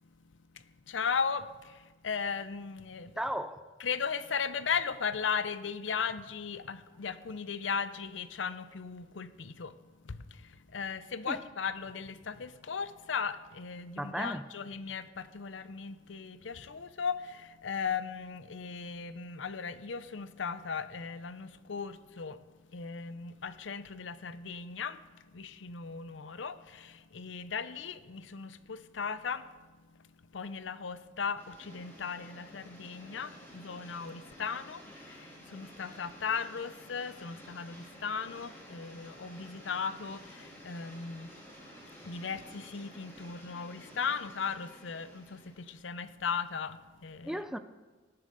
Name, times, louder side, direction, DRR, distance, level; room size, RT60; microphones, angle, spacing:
voice 1, 0.5-3.1 3.8-9.8 10.0-22.4 22.7-25.0 25.3-29.5 30.3-41.3 42.0-47.4, left 6 dB, 80° left, 0.7 m, -37 dB
voice 2, 3.2-3.7 11.3-11.5 14.0-14.5 47.2-47.6, equal, 5° right, 0.4 m, -35 dB
sound 1, 31.4-45.8, equal, 15° left, 3.3 m, -52 dB
18.5 x 11.0 x 4.0 m
head